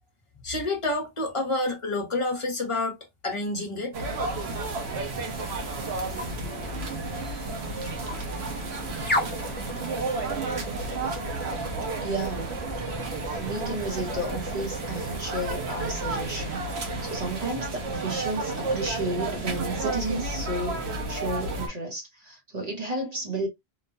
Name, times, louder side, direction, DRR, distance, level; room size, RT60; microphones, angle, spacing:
voice 1, 0.4-3.0 3.2-3.9, left 2 dB, 30° left, 0.9 m, -28 dB
sound 1, 3.9-21.7, right 3 dB, 80° right, 1.1 m, -32 dB
sound 2, 4.1-17.5, equal, 10° left, 0.6 m, -37 dB
voice 2, 12.0-12.5 13.3-23.5, right 2 dB, 40° right, 1.0 m, -32 dB
3.0 x 2.2 x 2.6 m
omnidirectional pair, 1.1 m